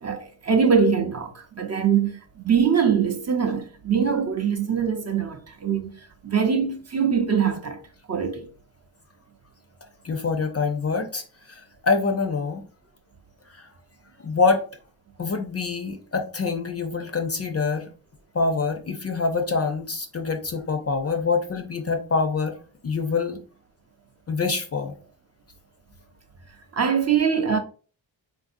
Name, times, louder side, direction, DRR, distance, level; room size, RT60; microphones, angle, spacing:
voice 1, 0.0-5.9 6.2-7.8 8.1-8.5 26.7-27.6, right 6 dB, 35° right, 0.5 m, -23 dB
voice 2, 10.0-12.6 13.5-13.7 14.2-14.6 15.2-17.9 18.3-22.5 22.8-23.4 24.3-24.9, left 4 dB, 30° left, 0.5 m, -25 dB
3.5 x 2.6 x 2.5 m
cardioid pair, 65°, 47 cm